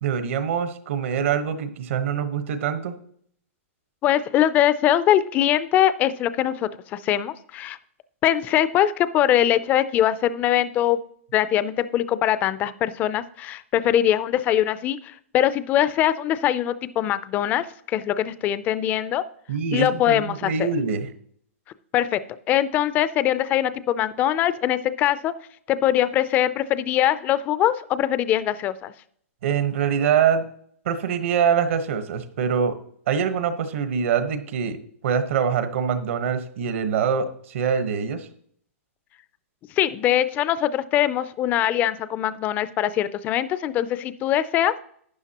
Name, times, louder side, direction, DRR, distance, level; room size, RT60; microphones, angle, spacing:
voice 1, 0.0-2.9 19.5-21.1 29.4-30.4 30.8-32.8 33.1-38.3, right 7 dB, 60° right, 10 dB, 1.2 m, -24 dB
voice 2, 4.0-7.8 8.2-11.0 11.3-19.2 19.7-20.7 21.9-22.2 22.5-25.3 25.7-28.9 39.8-44.7, left 11 dB, 20° left, 15 dB, 0.4 m, -22 dB
12.0 x 8.9 x 2.9 m, 0.64 s
hypercardioid pair, 155°, 8 cm